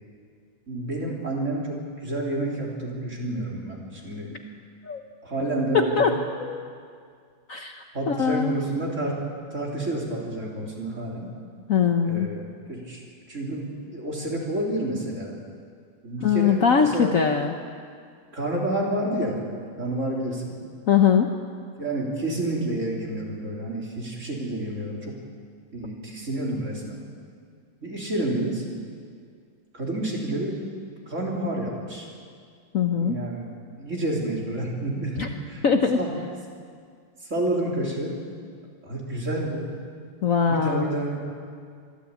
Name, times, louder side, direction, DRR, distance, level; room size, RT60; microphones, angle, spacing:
voice 1, 0.7-4.3 5.2-6.0 7.9-9.2 9.5-11.3 12.0-12.4 12.7-13.0 13.3-15.4 16.0-17.1 18.3-19.4 19.8-20.5 21.8-25.2 25.7-27.0 27.8-28.6 29.7-30.6 31.1-32.1 33.0-33.5 33.8-35.7 35.9-36.1 37.2-38.2 38.8-39.6 40.5-41.2, right 1 dB, 40° right, -3 dB, 3.8 m, -29 dB
voice 2, 5.7-6.1 6.4-6.6 7.5-8.6 11.7-12.3 16.2-17.5 20.9-21.3 32.7-33.2 35.2-35.3 35.6-36.0 40.2-40.9, left 7 dB, 55° left, 5 dB, 1.1 m, -21 dB
23.5 x 13.5 x 8.3 m, 2.2 s
omnidirectional pair, 2.1 m